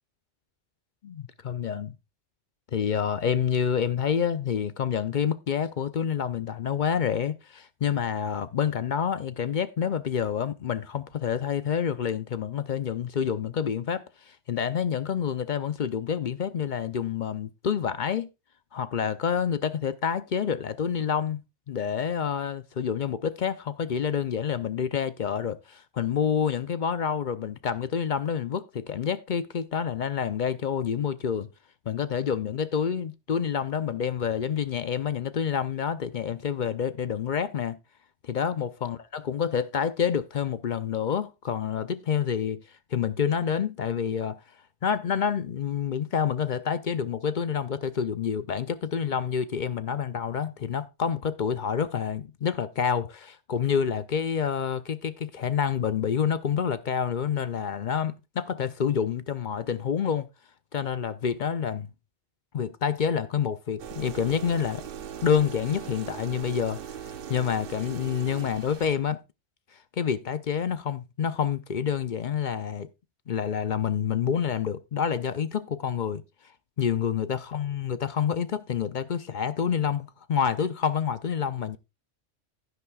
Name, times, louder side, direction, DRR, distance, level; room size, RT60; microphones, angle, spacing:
voice 1, 1.0-2.0 2.7-18.3 18.7-21.4 21.7-31.5 31.9-37.8 38.2-39.0 39.3-42.6 42.9-44.4 44.8-60.3 60.7-61.9 62.5-64.8 65.2-69.2 69.9-72.9 73.3-76.2 76.8-81.8, left 7 dB, 50° left, 0.6 m, -28 dB
sound 1, 63.8-69.0, right 8 dB, 55° right, 0.8 m, -40 dB
11.0 x 10.5 x 2.3 m
omnidirectional pair, 1.2 m